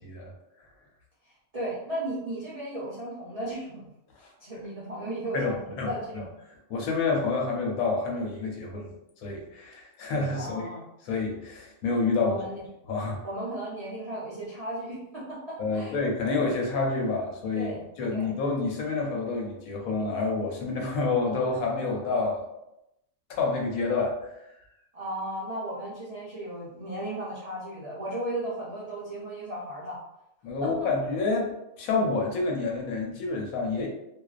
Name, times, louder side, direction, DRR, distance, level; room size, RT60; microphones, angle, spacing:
voice 1, 1.2-3.9 4.4-6.3 10.3-10.9 12.2-12.6 13.2-16.0 17.6-17.8 18.1-18.4 24.9-30.0 30.6-30.9, right 1 dB, 70° right, -8 dB, 0.3 m, -35 dB
voice 2, 5.3-6.2 6.7-8.9 9.2-10.7 11.0-12.3 12.9-13.3 15.6-22.4 23.3-24.4 30.4-33.9, left 3 dB, 80° left, 0 dB, 1.1 m, -28 dB
2.5 x 2.1 x 2.3 m, 0.86 s
omnidirectional pair, 1.4 m